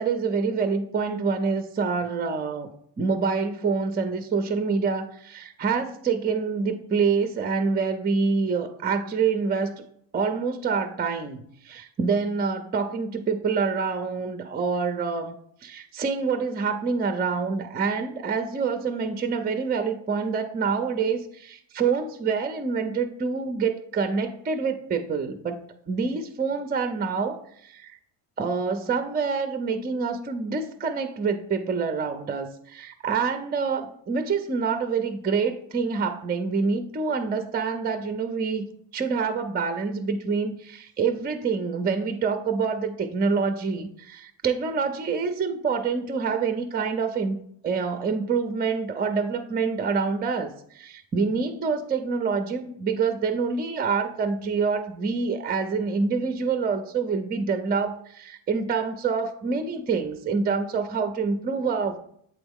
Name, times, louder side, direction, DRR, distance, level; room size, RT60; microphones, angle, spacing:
voice 1, 0.0-2.7 3.0-9.8 10.1-15.3 15.6-25.6 25.9-28.0 28.4-38.7 38.9-47.4 47.6-50.5 50.7-62.0, right 5 dB, 20° right, 8 dB, 0.5 m, -26 dB
8.0 x 3.5 x 3.5 m, 0.67 s
cardioid pair, 90°, 46 cm